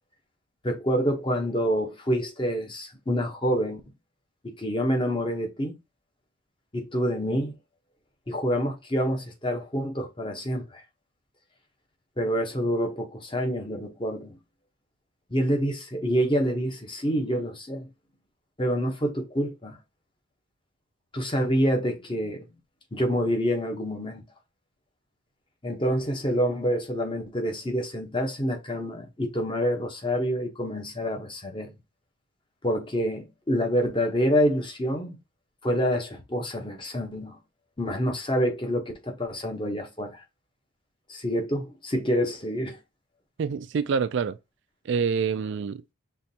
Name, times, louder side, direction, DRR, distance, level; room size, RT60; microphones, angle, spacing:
voice 1, 0.6-3.8 4.4-5.7 6.7-7.5 8.3-10.8 12.2-14.4 15.3-17.9 18.6-19.8 21.1-22.5 22.9-24.2 25.6-31.7 32.6-35.2 35.6-37.4 37.8-40.2 41.1-42.8, equal, 20° left, 0.9 m, -27 dB
voice 2, 43.4-44.4 44.9-45.9, right 6 dB, 55° right, 0.3 m, -26 dB
5.7 x 3.1 x 2.8 m
head